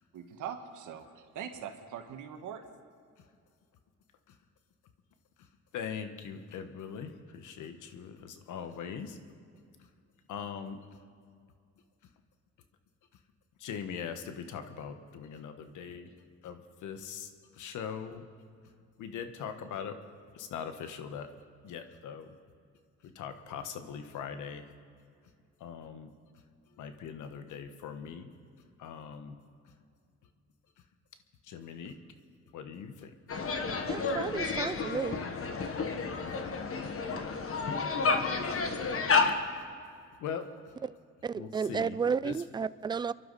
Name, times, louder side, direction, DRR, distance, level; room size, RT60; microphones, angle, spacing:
voice 1, 0.1-2.6 36.2-36.5, right 8 dB, 80° right, 5 dB, 1.6 m, -42 dB
voice 2, 5.7-9.2 10.3-10.8 13.6-16.1 16.4-18.3 19.0-20.0 20.3-21.3 21.6-22.4 23.0-24.7 25.6-26.1 26.8-28.3 28.8-29.4 31.4-32.0 32.5-33.2 38.5-38.6 40.2-40.7 41.3-42.0 42.2-42.4, left 7 dB, 80° left, 8 dB, 1.3 m, -41 dB
sound 1, 33.3-39.3, left 4 dB, 45° left, 1.5 m, -30 dB
voice 3, 33.9-35.2 41.2-43.1, right 6 dB, 15° right, 17 dB, 0.3 m, -32 dB
26.5 x 11.5 x 4.1 m, 2.3 s
cardioid pair, 90°, 30 cm